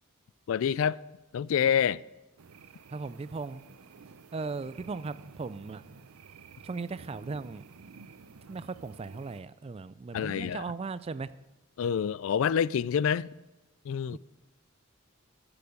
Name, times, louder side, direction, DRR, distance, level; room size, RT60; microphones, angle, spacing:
voice 1, 0.5-1.0 1.3-2.0 10.1-10.6 11.8-13.3 13.9-14.2, left 8 dB, 70° left, 0.3 m, -27 dB
sound 1, 2.4-9.4, right 5 dB, 90° right, 0.6 m, -52 dB
voice 2, 2.9-3.7 4.3-5.8 6.6-7.6 8.5-11.3 14.1-14.2, right 4 dB, 25° right, 0.3 m, -37 dB
15.0 x 7.0 x 6.5 m
head